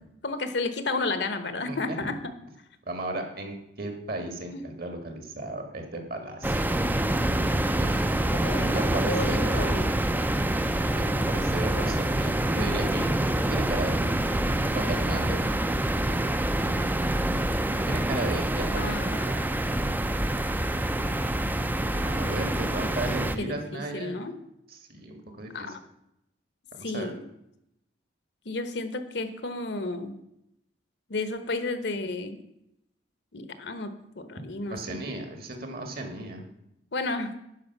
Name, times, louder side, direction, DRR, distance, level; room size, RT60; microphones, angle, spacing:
voice 1, 0.2-2.2 4.5-4.6 8.4-8.7 9.1-9.8 18.8-19.4 23.4-24.3 25.5-25.8 26.8-27.2 28.4-30.1 31.1-32.4 33.3-33.9 34.2-35.0 36.9-37.3, left 3 dB, 65° left, 10 dB, 1.0 m, -32 dB
voice 2, 1.7-2.0 2.9-6.7 7.8-9.9 10.9-14.2 14.7-15.4 17.8-19.4 21.9-24.2 24.7-25.7 26.8-27.1 34.7-36.5, right 2 dB, 55° right, 5 dB, 1.8 m, -35 dB
sound 1, 6.4-23.4, right 1 dB, 10° right, 0.4 m, -26 dB
10.5 x 5.1 x 6.7 m, 0.81 s
head